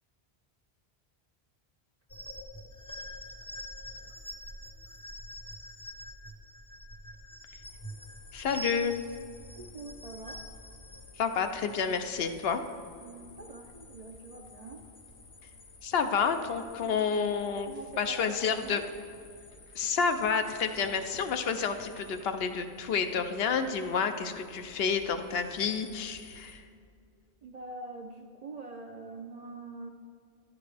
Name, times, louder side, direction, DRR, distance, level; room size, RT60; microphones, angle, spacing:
sound 1, 2.1-11.0, right 1 dB, 20° left, 0.6 m, -45 dB
sound 2, 7.6-26.6, left 3 dB, 90° left, 1.3 m, -53 dB
voice 1, 8.3-9.0 11.2-12.6 15.8-17.7 18.0-18.8 19.8-26.6, left 6 dB, 70° left, 7 dB, 0.8 m, -29 dB
voice 2, 9.6-10.4 13.0-14.9 16.8-17.2 17.7-18.9 27.4-29.9, right 3 dB, 55° right, 4 dB, 0.5 m, -45 dB
11.0 x 8.4 x 3.4 m, 2.3 s
omnidirectional pair, 1.1 m